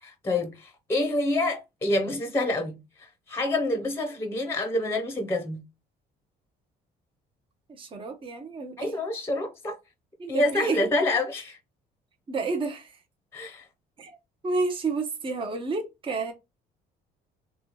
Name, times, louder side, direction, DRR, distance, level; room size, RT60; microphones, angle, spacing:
voice 1, 0.0-5.6 8.8-9.8 10.3-11.6 13.3-13.7, left 2 dB, 15° left, 0.7 m, -27 dB
voice 2, 7.7-8.9 10.2-10.8 12.3-12.9 14.0-14.2 14.4-16.3, right 3 dB, 30° right, 0.8 m, -30 dB
3.2 x 2.3 x 3.0 m
cardioid pair, 110°, 17 cm